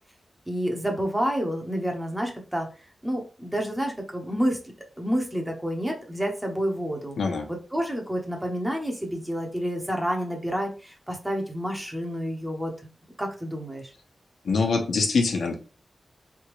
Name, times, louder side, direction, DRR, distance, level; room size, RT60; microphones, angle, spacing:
voice 1, 0.5-2.7 3.0-4.6 5.0-7.2 7.5-12.7 13.2-13.9, equal, 10° right, 2 dB, 1.0 m, -29 dB
voice 2, 7.2-7.5 14.4-15.5, left 4 dB, 80° left, 3 dB, 1.0 m, -24 dB
4.0 x 3.6 x 3.1 m, 0.34 s
wide cardioid pair, 145°, 0 cm